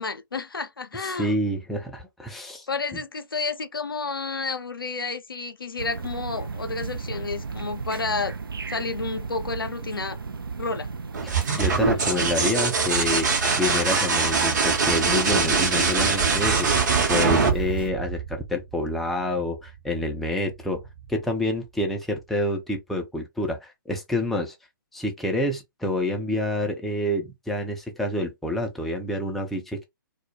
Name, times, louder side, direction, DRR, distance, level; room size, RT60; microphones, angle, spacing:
voice 1, 0.0-1.4 2.7-8.4 8.7-10.2 10.6-10.9, left 4 dB, 80° left, 0.4 m, -30 dB
voice 2, 1.0-2.7 11.2-20.8 21.1-24.6 24.9-29.8, left 1 dB, ahead, 0.3 m, -28 dB
sound 1, 5.8-17.9, right 4 dB, 80° right, 0.4 m, -35 dB
sound 2, 11.1-18.7 20.5-21.1, right 5 dB, 55° right, 0.9 m, -23 dB
2.2 x 2.0 x 2.7 m
figure-of-eight pair, 125°, 12 cm